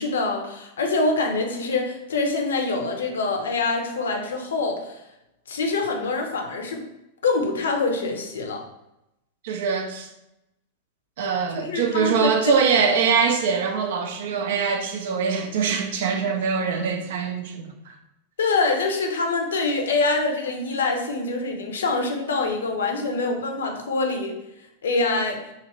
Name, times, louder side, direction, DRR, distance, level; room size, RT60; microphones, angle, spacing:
voice 1, 0.0-5.0 5.5-6.8 7.2-8.6 11.5-12.5 12.8-13.0 18.4-24.3 24.8-25.4, left 3 dB, 65° left, 0.5 m, -25 dB
voice 2, 9.4-10.1 11.2-17.9, right 6 dB, 55° right, 0.4 m, -23 dB
2.8 x 2.4 x 2.9 m
figure-of-eight pair, 90°, 0 cm